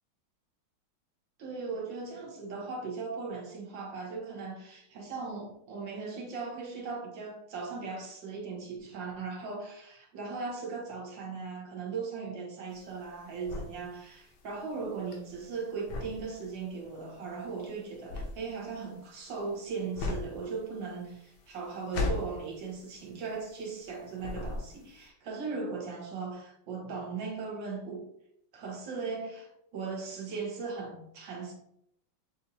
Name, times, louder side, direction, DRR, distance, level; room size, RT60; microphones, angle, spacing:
voice 1, 1.4-28.0 28.5-31.5, right 4 dB, 65° right, 1.6 m, -38 dB
sound 1, 12.7-23.9 24.2-25.0, left 3 dB, 80° left, 1.6 m, -38 dB
7.0 x 2.6 x 2.7 m
omnidirectional pair, 2.2 m